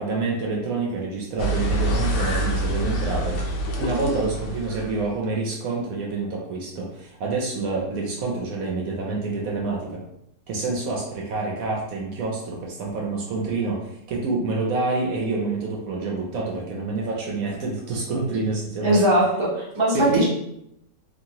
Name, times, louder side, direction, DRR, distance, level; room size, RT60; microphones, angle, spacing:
voice 1, 0.0-3.4 3.8-10.0 10.5-19.1 19.9-20.2, right 3 dB, 65° right, -2 dB, 0.9 m, -27 dB
sound 1, 1.4-5.3, right 1 dB, 65° left, 0.7 m, -26 dB
voice 2, 18.8-20.2, right 1 dB, 40° right, -5 dB, 0.4 m, -20 dB
2.9 x 2.5 x 2.8 m, 0.79 s
omnidirectional pair, 1.8 m